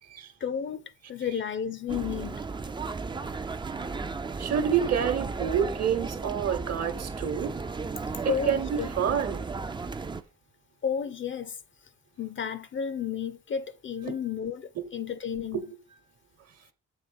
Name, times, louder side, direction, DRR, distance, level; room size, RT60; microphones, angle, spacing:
voice 1, 0.4-2.4 8.3-8.9 10.8-11.6 12.2-15.6, left 7 dB, 40° left, 0.6 m, -32 dB
sound 1, 1.9-10.2, right 4 dB, 15° right, 0.4 m, -35 dB
voice 2, 4.4-7.5 8.2-9.5 14.8-14.9 15.5-15.6, right 8 dB, 55° right, 1.1 m, -28 dB
7.2 x 3.2 x 5.1 m
cardioid pair, 90°, 30 cm